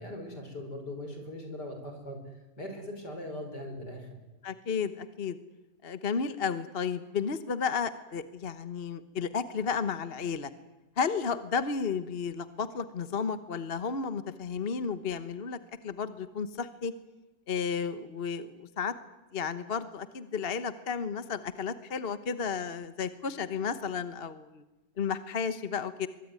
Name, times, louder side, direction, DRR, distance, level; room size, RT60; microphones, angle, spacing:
voice 1, 0.0-2.2 2.6-4.2, left 1 dB, 70° left, 5 dB, 6.3 m, -40 dB
voice 2, 4.4-5.4 5.8-10.5 11.0-15.6 15.8-16.9 17.5-18.9 19.3-24.6 25.0-26.1, left 6 dB, 40° left, 12 dB, 1.2 m, -33 dB
24.0 x 23.5 x 9.6 m, 1.1 s
omnidirectional pair, 1.8 m